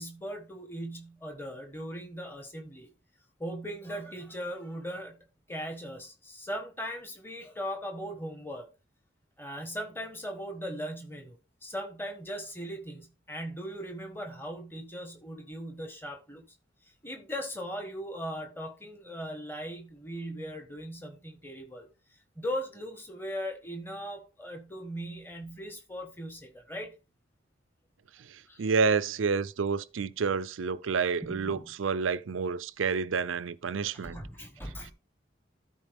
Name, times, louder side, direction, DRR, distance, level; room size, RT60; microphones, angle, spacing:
voice 1, 0.0-2.9 3.4-5.2 5.5-8.7 9.4-16.5 16.8-21.9 22.3-26.9 28.4-28.7 31.2-31.7 34.0-34.9, equal, 10° left, 1.4 m, -39 dB
voice 2, 28.6-34.2, right 5 dB, 90° right, 0.5 m, -29 dB
13.0 x 4.4 x 3.5 m
head